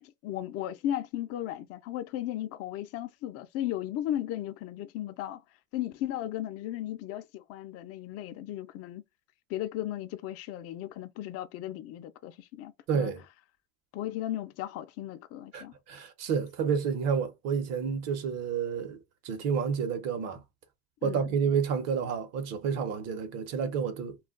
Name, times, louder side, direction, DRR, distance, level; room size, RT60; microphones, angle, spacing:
voice 1, 0.0-5.4 5.7-9.0 9.5-13.1 13.9-15.7 21.0-21.4, left 12 dB, 50° left, 0.4 m, -36 dB
voice 2, 12.9-13.2 15.5-19.0 19.2-20.4 21.0-24.2, right 6 dB, 60° right, 0.9 m, -30 dB
2.3 x 2.2 x 3.5 m
supercardioid pair, 110°, 30 cm